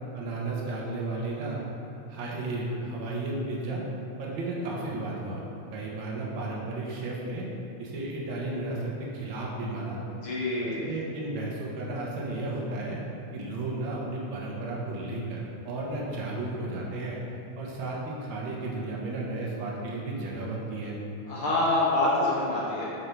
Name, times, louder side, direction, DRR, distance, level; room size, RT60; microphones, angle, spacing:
voice 1, 0.1-1.6 2.1-3.8 4.2-5.4 5.7-7.5 7.8-10.0 10.6-13.0 13.3-17.2 17.5-21.0, right 2 dB, 55° right, -4 dB, 1.5 m, -33 dB
voice 2, 10.2-10.9 21.3-22.9, left 2 dB, 60° left, -7 dB, 1.5 m, -26 dB
7.5 x 5.5 x 4.6 m, 2.7 s
omnidirectional pair, 3.5 m